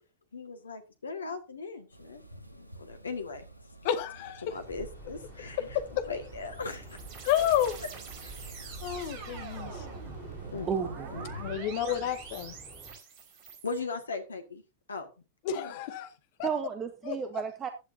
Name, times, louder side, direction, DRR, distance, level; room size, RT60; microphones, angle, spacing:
voice 1, 0.3-2.2 2.5-3.5 4.4-5.7 6.1-7.0 8.2-8.4 10.5-11.3 13.6-14.6 14.9-15.1 15.5-15.7, left 4 dB, 75° left, 1.8 m, -38 dB
sound 1, 1.9-11.6, right 1 dB, 90° right, 1.5 m, -48 dB
voice 2, 3.8-4.4 7.3-7.8 8.8-9.9 11.4-12.5 15.4-16.1 16.4-16.5 17.1-17.2, left 10 dB, 50° left, 1.9 m, -30 dB
sound 2, 4.5-12.9, right 1 dB, ahead, 4.4 m, -50 dB
sound 3, 6.2-13.8, right 6 dB, 40° right, 4.9 m, -45 dB
voice 3, 10.7-11.4 16.4-17.7, right 7 dB, 25° right, 1.4 m, -33 dB
15.5 x 11.0 x 2.8 m
figure-of-eight pair, 90°, 0 cm